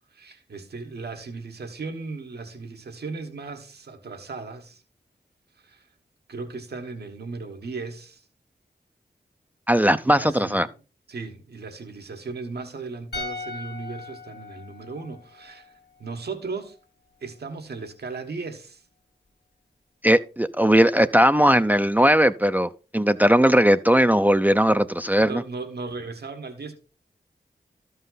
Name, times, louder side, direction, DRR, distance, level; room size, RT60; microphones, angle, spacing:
voice 1, 0.1-4.8 5.6-5.8 6.3-8.2 10.0-10.7 11.1-16.8 17.2-18.8 25.2-26.7, right 4 dB, 80° right, 1.3 m, -36 dB
voice 2, 9.7-10.7 20.0-25.4, equal, 10° right, 0.4 m, -19 dB
sound 1, 13.1-16.3 16.6-16.8, left 3 dB, 85° left, 1.5 m, -39 dB
12.5 x 5.5 x 3.9 m
cardioid pair, 45°, 17 cm